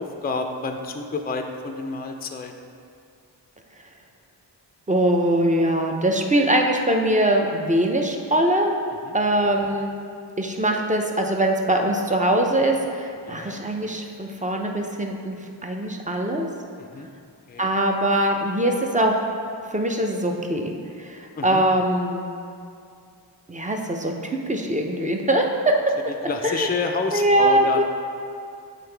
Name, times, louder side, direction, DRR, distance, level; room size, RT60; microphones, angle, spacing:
voice 1, 0.0-2.5 9.0-9.2 13.2-13.6 16.8-17.1 17.5-17.7 21.4-21.6 26.3-27.8, left 3 dB, 20° left, 5 dB, 0.4 m, -29 dB
voice 2, 4.9-8.7 9.1-10.0 10.4-15.4 15.6-16.5 17.6-19.2 19.7-20.7 21.0-22.2 23.5-25.9 26.4-26.7 27.1-27.8, right 1 dB, 15° right, 2 dB, 0.6 m, -22 dB
7.6 x 3.9 x 3.4 m, 2.4 s
cardioid pair, 45°, 44 cm